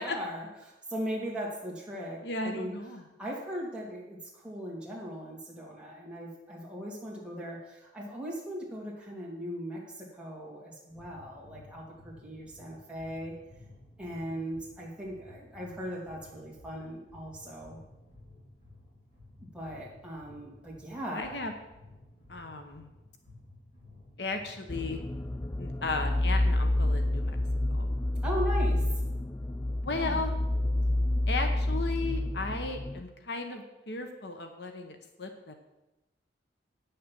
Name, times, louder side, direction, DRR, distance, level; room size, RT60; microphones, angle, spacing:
voice 1, 0.0-13.3 14.0-17.8 19.5-21.4 28.2-28.8 29.9-30.2, equal, 5° right, -5 dB, 2.6 m, -39 dB
voice 2, 2.2-3.0 21.1-21.5 22.3-22.9 24.2-25.0 25.6-27.4 27.7-27.9 29.8-30.4 31.3-35.5, left 3 dB, 60° left, 5 dB, 1.0 m, -35 dB
sound 1, 10.9-27.3, left 2 dB, 35° left, 3.8 m, -55 dB
sound 2, 24.7-33.0, left 1 dB, 15° left, 0.3 m, -29 dB
9.4 x 6.7 x 7.6 m, 0.98 s
head